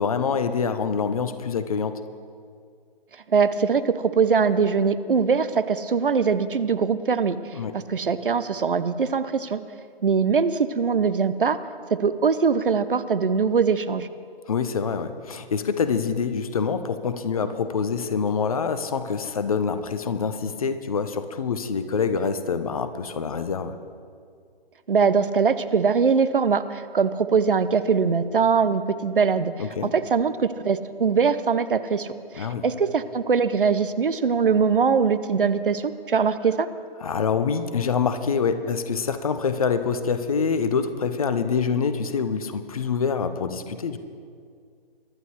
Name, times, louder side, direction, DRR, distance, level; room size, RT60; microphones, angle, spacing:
voice 1, 0.0-1.9 7.5-7.7 14.5-23.8 29.6-29.9 32.4-32.6 37.0-44.0, left 5 dB, 35° left, 10 dB, 0.8 m, -25 dB
voice 2, 3.3-7.4 7.7-9.6 10.0-11.6 11.9-14.1 24.9-29.5 29.9-36.7, right 5 dB, 60° right, 13 dB, 0.8 m, -22 dB
23.0 x 11.5 x 3.2 m, 2.2 s
figure-of-eight pair, 140°, 30 cm